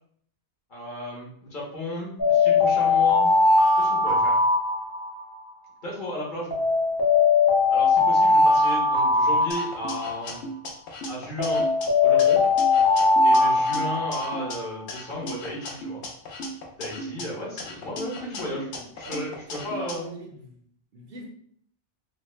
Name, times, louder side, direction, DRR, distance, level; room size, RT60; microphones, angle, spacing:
voice 1, 0.7-3.3 3.8-4.4 5.8-6.5 7.7-10.4 11.1-11.7 12.0-12.4 13.2-16.0 16.8-18.7 19.0-20.0, left 1 dB, 50° left, -4 dB, 1.0 m, -34 dB
sound 1, 2.2-5.4 6.5-10.3 11.4-14.6, left 3 dB, 25° left, 0.6 m, -20 dB
sound 2, 9.5-11.9 12.2-14.6 14.9-17.2 17.6-19.9, equal, 75° left, 0.9 m, -36 dB
voice 2, 18.5-19.2 19.5-20.6 20.9-21.3, right 3 dB, 65° right, 0 dB, 0.7 m, -42 dB
3.0 x 2.1 x 3.0 m, 0.63 s
omnidirectional pair, 1.2 m